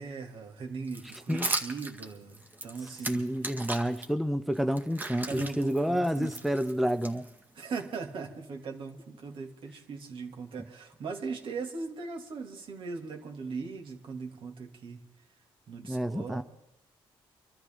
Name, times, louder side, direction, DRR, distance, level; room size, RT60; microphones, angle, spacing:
voice 1, 0.0-3.6 5.2-6.3 7.5-15.0 15.7-16.4, right 4 dB, 60° right, 2 dB, 2.9 m, -39 dB
sound 1, 0.9-4.1 4.5-7.6, right 2 dB, 20° right, 2.0 m, -37 dB
voice 2, 3.1-7.3 15.9-16.4, equal, ahead, 10 dB, 0.7 m, -29 dB
25.0 x 13.0 x 3.9 m, 0.91 s
cardioid pair, 100°, 10 cm